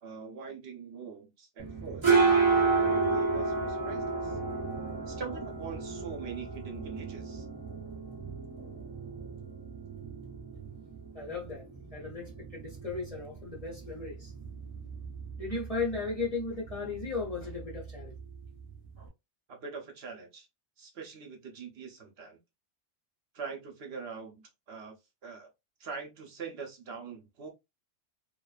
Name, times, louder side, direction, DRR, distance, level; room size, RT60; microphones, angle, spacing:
voice 1, 0.0-4.4 5.1-7.5 19.5-20.5 20.8-22.4 23.3-25.0 25.2-25.5 25.8-27.5, right 5 dB, 65° right, 1.0 m, -43 dB
sound 1, 1.6-19.1, right 4 dB, 35° right, 0.6 m, -32 dB
voice 2, 11.1-11.7 11.9-14.3 15.4-18.1, left 4 dB, 40° left, 0.7 m, -36 dB
2.5 x 2.2 x 2.3 m
omnidirectional pair, 1.2 m